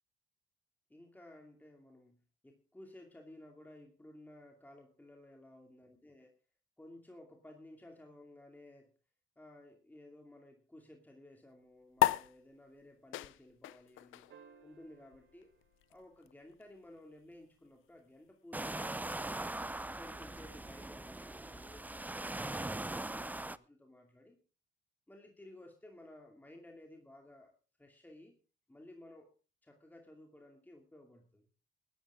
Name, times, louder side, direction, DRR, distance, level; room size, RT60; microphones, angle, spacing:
voice 1, 0.9-6.3 6.8-8.9 9.4-15.5 15.9-19.4 20.0-24.4 25.1-28.4 28.7-29.3 29.6-31.5, left 1 dB, 10° left, 2 dB, 2.5 m, -56 dB
sound 1, 12.0-18.8, left 16 dB, 85° left, 0.6 m, -38 dB
sound 2, 14.3-16.8 19.0-19.1, right 6 dB, 75° right, 2.6 m, -62 dB
sound 3, 18.5-23.6, right 2 dB, 10° right, 0.6 m, -41 dB
19.5 x 12.0 x 3.7 m, 0.35 s
cardioid pair, 90°, 20 cm